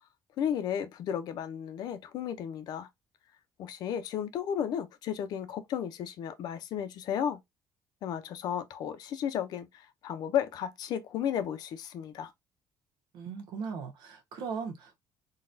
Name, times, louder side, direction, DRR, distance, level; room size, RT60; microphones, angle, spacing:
voice 1, 0.4-2.9 3.6-7.4 8.0-12.3, left 9 dB, 65° left, 0.6 m, -33 dB
voice 2, 13.1-15.0, right 5 dB, 80° right, 1.1 m, -38 dB
4.0 x 2.3 x 2.6 m
cardioid pair, 140°, 8 cm